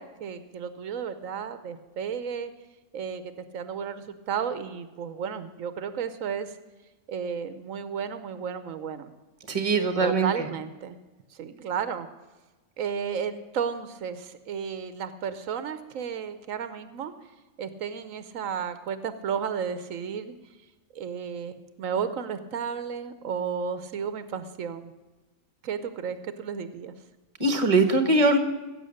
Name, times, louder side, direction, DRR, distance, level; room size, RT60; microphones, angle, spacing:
voice 1, 0.0-2.5 2.9-6.6 7.1-9.1 10.0-11.0 11.3-12.1 12.8-17.1 17.6-20.3 20.9-24.9 25.6-26.9, right 7 dB, 80° right, 12 dB, 1.1 m, -33 dB
voice 2, 9.5-10.3 27.4-28.4, right 2 dB, 25° right, 8 dB, 1.2 m, -21 dB
15.5 x 7.8 x 6.4 m, 1.2 s
omnidirectional pair, 1.4 m